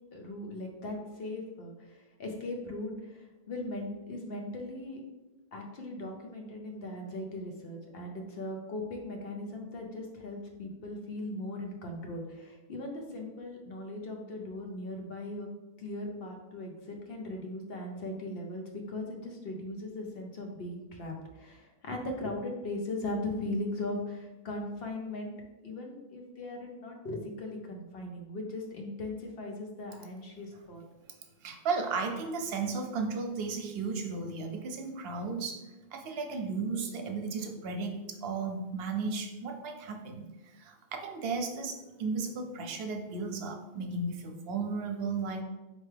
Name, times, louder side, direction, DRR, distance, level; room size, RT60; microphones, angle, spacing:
voice 1, 0.1-5.0 5.5-15.5 15.8-25.3 25.6-30.8, left 2 dB, 70° left, 1 dB, 0.9 m, -39 dB
voice 2, 31.4-40.3 40.6-45.4, right 4 dB, 75° right, 4 dB, 0.8 m, -35 dB
4.4 x 2.8 x 3.3 m, 1.1 s
omnidirectional pair, 1.0 m